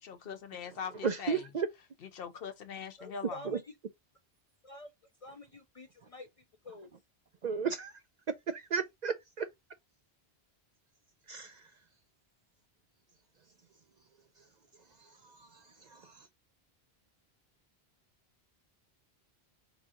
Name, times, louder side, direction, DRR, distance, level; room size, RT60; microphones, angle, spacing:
voice 1, 0.0-1.4 2.0-3.4, left 6 dB, 65° left, 0.8 m, -42 dB
voice 2, 1.0-1.7 7.4-7.9 8.5-9.5 11.3-11.7 15.0-16.3, right 6 dB, 55° right, 0.5 m, -35 dB
voice 3, 3.0-3.7 4.6-4.9 5.2-6.9, left 1 dB, 45° left, 0.4 m, -48 dB
4.9 x 2.6 x 3.6 m
omnidirectional pair, 1.1 m